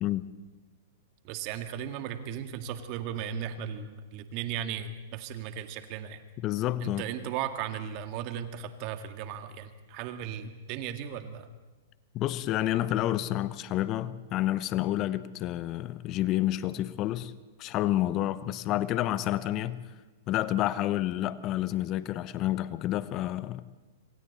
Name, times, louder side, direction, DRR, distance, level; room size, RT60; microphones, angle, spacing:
voice 1, 1.2-6.2 6.8-11.5, right 9 dB, 45° right, 8 dB, 1.9 m, -36 dB
voice 2, 6.4-7.0 12.1-17.3 17.6-19.8 20.3-23.6, left 14 dB, 40° left, 15 dB, 0.8 m, -29 dB
26.5 x 26.0 x 4.2 m, 1.2 s
hypercardioid pair, 110°, 0 cm